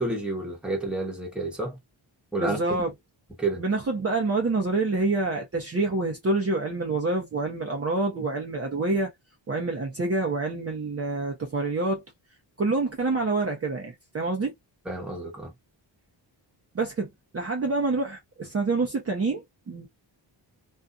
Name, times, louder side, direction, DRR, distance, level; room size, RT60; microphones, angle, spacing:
voice 1, 0.0-1.8 2.3-2.6 3.4-3.6 14.8-15.5, right 2 dB, ahead, 1.2 m, -30 dB
voice 2, 2.4-2.9 3.5-9.1 9.5-12.0 12.6-14.5 16.7-19.9, right 3 dB, 30° right, 0.7 m, -27 dB
2.6 x 2.4 x 2.3 m
wide cardioid pair, 120°, 46 cm